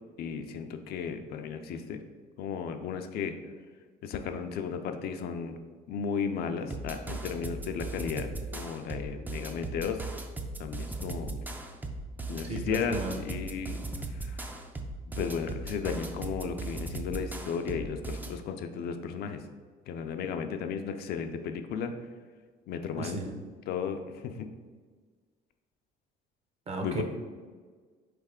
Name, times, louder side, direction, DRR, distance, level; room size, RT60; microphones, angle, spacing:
voice 1, 0.2-2.0 2.4-3.4 4.0-5.6 5.9-10.0 10.6-11.4 12.3-14.4 15.2-19.4 19.9-21.9 22.7-23.2 23.7-24.5 26.8-27.0, left 6 dB, 70° left, 7 dB, 0.4 m, -34 dB
sound 1, 6.7-18.4, right 2 dB, 10° right, 0.3 m, -38 dB
voice 2, 12.5-13.1 23.0-23.3 26.7-27.0, right 3 dB, 40° right, 3 dB, 0.7 m, -34 dB
4.0 x 3.3 x 3.6 m, 1.5 s
cardioid pair, 110°, 17 cm